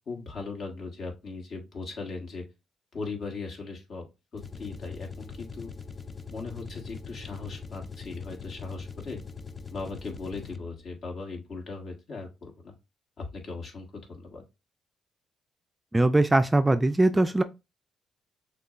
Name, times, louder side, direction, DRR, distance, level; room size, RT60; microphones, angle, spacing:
voice 1, 0.1-2.4 2.9-4.1 4.3-5.7 6.3-9.2 9.7-12.7 13.2-14.4, left 3 dB, 55° left, 1.6 m, -38 dB
sound 1, 4.3-10.9, left 5 dB, 30° left, 0.6 m, -42 dB
voice 2, 15.9-17.4, right 2 dB, 15° right, 0.3 m, -21 dB
6.6 x 2.3 x 2.5 m
cardioid pair, 90°, 0 cm